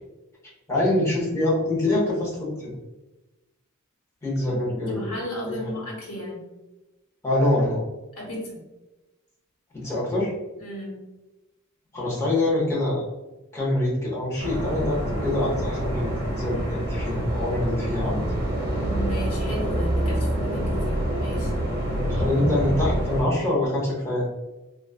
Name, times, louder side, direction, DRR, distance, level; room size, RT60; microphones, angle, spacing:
voice 1, 0.7-2.7 4.2-5.8 7.2-7.8 9.7-10.3 11.9-13.0 13.5-18.2 21.9-24.3, left 1 dB, 15° left, -6 dB, 1.0 m, -25 dB
voice 2, 4.5-6.4 8.2-8.6 10.6-11.0 18.7-21.5, equal, 70° left, -3 dB, 1.1 m, -34 dB
sound 1, 14.4-23.2, right 1 dB, 50° right, 0.9 m, -26 dB
3.2 x 2.4 x 2.3 m, 1.1 s
head